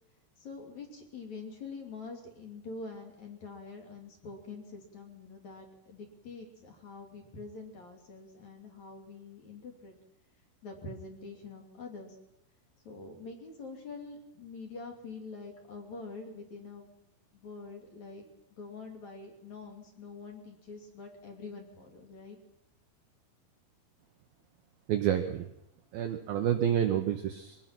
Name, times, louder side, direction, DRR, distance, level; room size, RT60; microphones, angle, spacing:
voice 1, 0.4-9.9 10.6-12.2 12.8-16.9 17.3-18.2 18.5-22.4, left 4 dB, 40° left, 2 dB, 3.5 m, -45 dB
voice 2, 24.9-25.5 25.9-27.6, right 10 dB, 85° right, 6 dB, 2.1 m, -29 dB
24.0 x 18.0 x 6.0 m, 0.80 s
omnidirectional pair, 5.8 m